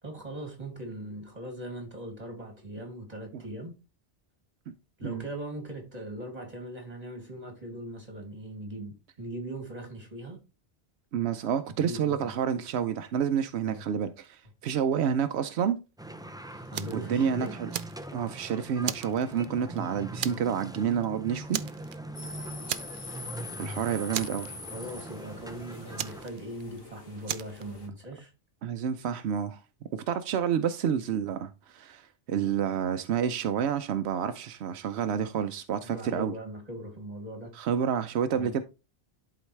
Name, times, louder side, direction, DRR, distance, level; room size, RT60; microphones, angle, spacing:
voice 1, 0.0-3.8 5.0-10.4 11.8-12.3 13.6-13.8 16.7-17.6 24.7-28.3 35.8-37.5 38.3-38.5, right 1 dB, 40° right, 2.7 m, -40 dB
voice 2, 11.1-15.8 16.9-17.7 18.1-21.6 23.6-24.5 28.6-29.6 29.9-36.3 37.5-38.6, right 8 dB, 90° right, 0.9 m, -29 dB
sound 1, 16.0-26.3, right 1 dB, 5° right, 0.3 m, -42 dB
Fire, 16.7-17.1 17.5-18.4 18.8-19.8 20.2-20.6 20.9-21.1 21.5-22.2 22.7-23.3 23.5-23.6 24.1-24.9 26.0-26.8 27.3-27.6, right 10 dB, 60° right, 0.6 m, -35 dB
sound 2, 22.1-27.9, left 3 dB, 65° left, 1.8 m, -44 dB
11.5 x 3.9 x 3.2 m
omnidirectional pair, 1.1 m